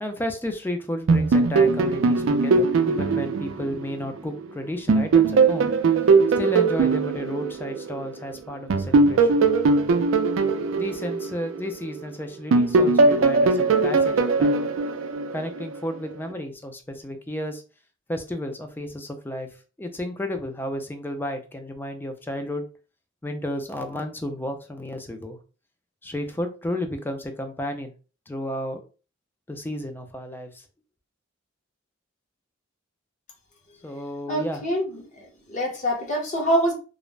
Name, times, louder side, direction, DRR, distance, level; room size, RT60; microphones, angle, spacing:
voice 1, 0.0-5.7 6.3-9.4 10.8-14.6 15.3-17.6 18.1-19.5 19.8-22.6 23.2-25.4 26.0-27.9 28.3-28.8 29.5-30.6 33.8-34.6, left 1 dB, 10° left, 0.4 m, -32 dB
sound 1, 1.1-4.4 4.9-8.1 8.7-12.0 12.5-15.8, right 4 dB, 75° right, 0.4 m, -20 dB
voice 2, 34.3-36.7, equal, 40° left, 0.8 m, -25 dB
2.4 x 2.0 x 3.1 m
head